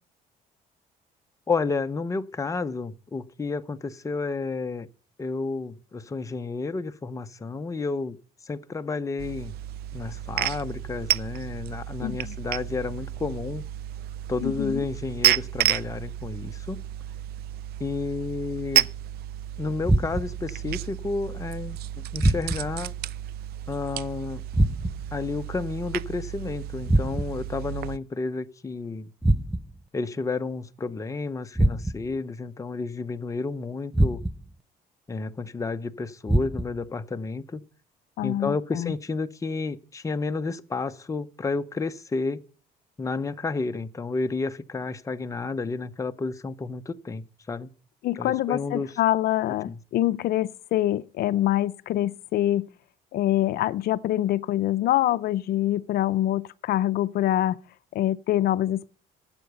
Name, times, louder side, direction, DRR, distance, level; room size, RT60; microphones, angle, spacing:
voice 1, 1.5-4.9 5.2-8.2 8.4-9.5 9.9-13.6 14.3-16.8 17.8-18.9 19.6-21.8 22.1-22.9 23.7-24.4 25.1-29.1 29.9-34.2 35.1-37.6 38.2-42.4 43.0-47.7 48.2-48.9 49.7-49.8, left 4 dB, 20° left, 0.7 m, -31 dB
sound 1, 9.2-28.0, right 13 dB, 70° right, 0.4 m, -31 dB
voice 2, 12.0-12.4 14.4-14.8 38.2-38.9 48.0-52.7 53.1-57.6 57.9-58.9, left 13 dB, 65° left, 0.5 m, -25 dB
sound 2, 19.8-20.5 22.2-22.8 24.5-25.2 26.9-27.5 29.2-29.9 31.6-32.2 33.9-34.6 36.3-36.9, right 1 dB, ahead, 0.4 m, -24 dB
11.5 x 7.9 x 5.3 m
cardioid pair, 110°, 17 cm